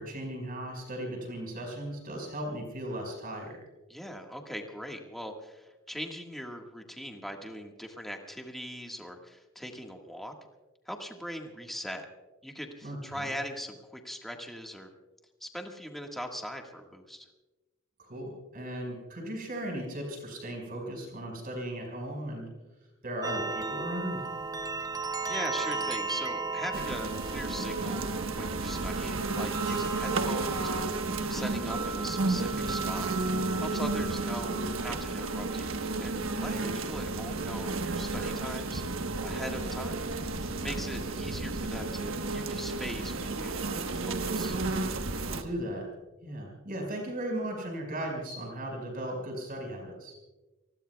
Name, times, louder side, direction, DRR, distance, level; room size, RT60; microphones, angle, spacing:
voice 1, 0.0-3.6 12.8-13.3 18.0-22.5 23.0-24.3 36.5-36.9 45.3-45.9 46.2-50.1, right 1 dB, 40° right, 1 dB, 5.3 m, -37 dB
voice 2, 3.9-10.3 10.8-12.0 12.4-14.9 15.4-17.3 25.2-33.1 33.6-40.0 40.4-44.6, equal, ahead, 2 dB, 1.6 m, -41 dB
sound 1, 23.2-36.6, right 4 dB, 15° right, 0.4 m, -37 dB
sound 2, 26.7-45.4, right 3 dB, 70° right, 1.2 m, -32 dB
29.5 x 20.5 x 2.3 m, 1.1 s
head